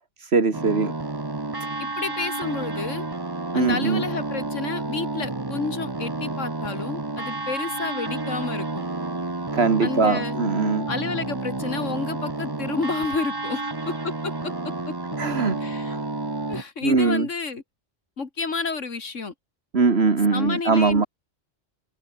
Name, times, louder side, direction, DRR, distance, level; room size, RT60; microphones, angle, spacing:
voice 1, 0.2-0.9 3.5-4.0 9.5-10.9 15.2-15.6 15.9-16.1 16.8-17.3 19.7-21.1, right 4 dB, 60° right, 2.3 m, -21 dB
sound 1, 0.5-16.6, right 2 dB, 20° right, 1.3 m, -30 dB
voice 2, 2.0-3.1 3.5-8.8 9.8-10.4 10.9-13.6 13.9-14.5 15.6-15.9 16.5-17.6 18.2-19.3 20.3-21.1, left 4 dB, 90° left, 2.6 m, -30 dB
omnidirectional pair, 1.2 m